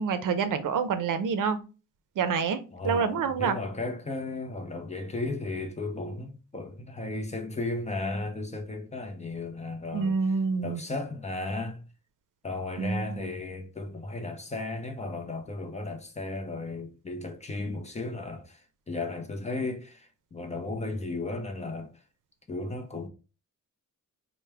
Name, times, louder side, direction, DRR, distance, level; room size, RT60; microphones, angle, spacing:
voice 1, 0.0-1.6 2.2-3.6 9.9-10.8 12.8-13.3, right 5 dB, 70° right, 0.6 m, -27 dB
voice 2, 2.7-10.2 10.6-11.8 12.4-21.9 22.5-23.1, left 2 dB, 20° left, 0.5 m, -35 dB
4.4 x 2.1 x 3.3 m
wide cardioid pair, 165°, 33 cm